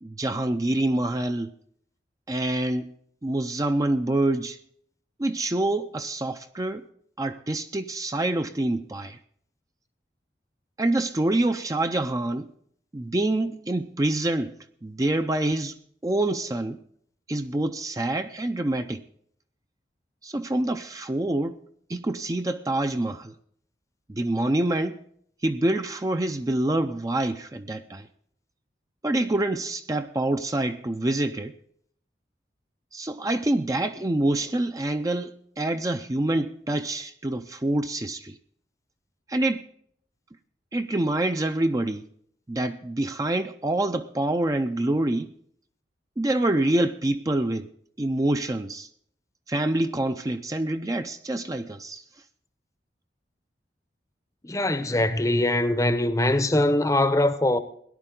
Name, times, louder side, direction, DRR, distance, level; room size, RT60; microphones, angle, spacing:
voice 1, 0.0-1.5 2.3-2.9 3.2-4.6 5.2-6.9 7.2-9.2 10.8-12.5 12.9-14.5 14.8-15.8 16.0-16.8 17.3-19.0 20.2-21.6 21.9-23.3 24.1-25.0 25.4-28.1 29.0-31.6 32.9-38.4 39.3-39.7 40.7-42.1 42.5-45.3 46.2-47.7 48.0-48.9 49.5-52.0, right 1 dB, 20° right, 0.5 m, -26 dB
voice 2, 54.4-57.6, left 1 dB, 20° left, 0.7 m, -22 dB
18.0 x 11.0 x 3.8 m
head